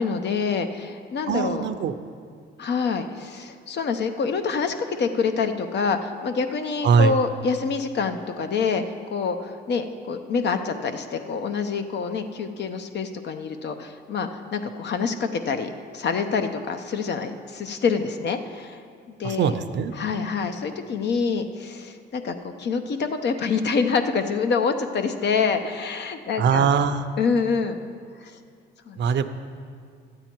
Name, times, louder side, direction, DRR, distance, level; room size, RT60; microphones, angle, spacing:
voice 1, 0.0-1.7 2.6-8.8 9.1-18.8 19.2-19.5 20.0-26.7 27.2-27.8 28.2-28.4 28.9-29.1, left 5 dB, 60° left, 7 dB, 0.8 m, -26 dB
voice 2, 1.3-1.9 6.8-7.2 19.2-19.9 26.4-27.0 29.0-29.2, right 6 dB, 65° right, 10 dB, 0.6 m, -21 dB
12.5 x 8.8 x 4.5 m, 2.2 s
cardioid pair, 90°, 20 cm